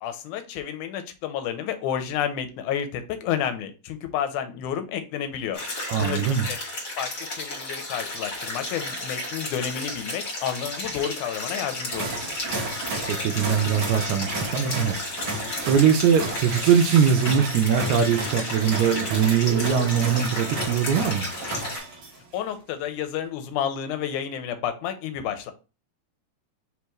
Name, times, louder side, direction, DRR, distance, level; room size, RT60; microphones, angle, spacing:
voice 1, 0.0-5.6 6.0-6.6 7.0-12.1 22.3-25.5, left 9 dB, 85° left, 2.1 m, -30 dB
sound 1, 5.5-21.8, left 2 dB, 40° left, 2.1 m, -33 dB
voice 2, 5.9-6.5 13.1-15.0 15.7-21.3, right 7 dB, 80° right, 1.8 m, -21 dB
sound 2, 11.9-22.3, right 2 dB, 60° right, 1.2 m, -33 dB
4.6 x 3.4 x 3.0 m
omnidirectional pair, 3.5 m